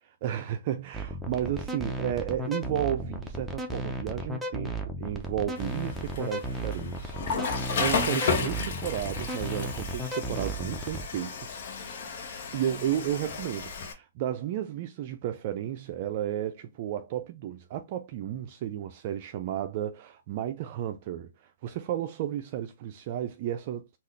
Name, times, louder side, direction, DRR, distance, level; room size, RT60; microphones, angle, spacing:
voice 1, 0.1-11.6 12.5-24.0, right 11 dB, 45° right, 0.4 m, -33 dB
sound 1, 0.9-11.0, equal, ahead, 0.6 m, -34 dB
Water / Toilet flush, 5.6-13.9, left 5 dB, 55° left, 0.9 m, -33 dB
3.7 x 2.4 x 3.1 m
hypercardioid pair, 140°, 0 cm